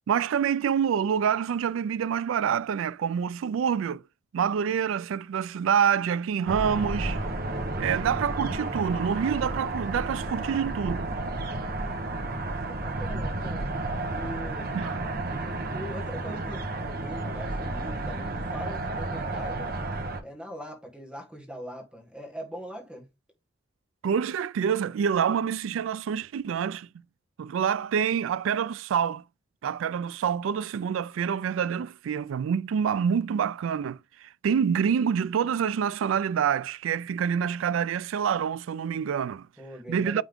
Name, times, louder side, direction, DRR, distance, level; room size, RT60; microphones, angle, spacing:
voice 1, 0.1-4.0 4.3-7.2 7.8-11.1 14.7-14.9 24.0-26.9 27.4-29.2 29.6-39.5 39.9-40.2, right 7 dB, 80° right, 0.3 m, -27 dB
sound 1, 6.5-20.2, right 2 dB, 50° right, 1.1 m, -32 dB
voice 2, 11.7-12.1 12.7-14.7 15.3-19.7 20.2-23.1 39.6-40.2, equal, 5° right, 1.5 m, -42 dB
9.1 x 3.6 x 3.5 m
head